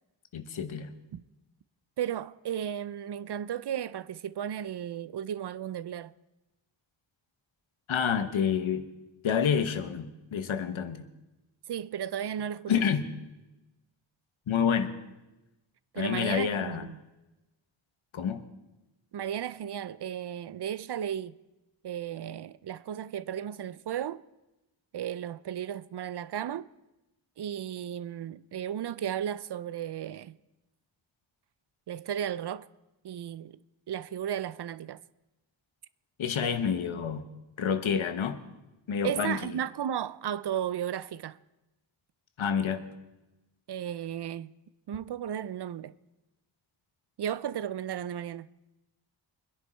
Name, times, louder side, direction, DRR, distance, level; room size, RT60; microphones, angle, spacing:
voice 1, 0.3-0.9 7.9-8.9 9.2-11.1 12.7-13.1 14.5-14.9 15.9-16.9 18.1-18.4 36.2-37.3 37.6-38.4 38.9-39.4 42.4-42.9, left 7 dB, 90° left, 1.2 m, -28 dB
voice 2, 2.0-6.1 11.7-12.7 15.9-17.0 19.1-21.3 21.8-24.2 24.9-26.7 27.4-30.4 31.9-32.7 33.0-33.6 33.9-35.0 39.0-41.4 43.7-44.5 44.9-45.9 47.2-48.5, right 10 dB, 60° right, 0.5 m, -34 dB
24.5 x 10.5 x 4.4 m
wide cardioid pair, 140°, 46 cm